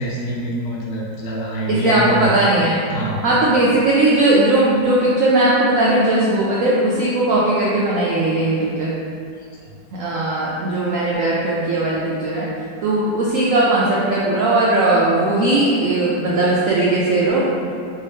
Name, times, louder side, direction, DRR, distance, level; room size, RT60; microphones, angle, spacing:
voice 1, 0.0-2.2 2.8-3.3, equal, 60° left, -4 dB, 0.9 m, -26 dB
voice 2, 1.7-2.8 3.2-8.9 9.9-12.5 12.8-17.5, right 2 dB, 85° right, -6 dB, 0.7 m, -18 dB
4.4 x 2.7 x 3.4 m, 2.4 s
omnidirectional pair, 2.0 m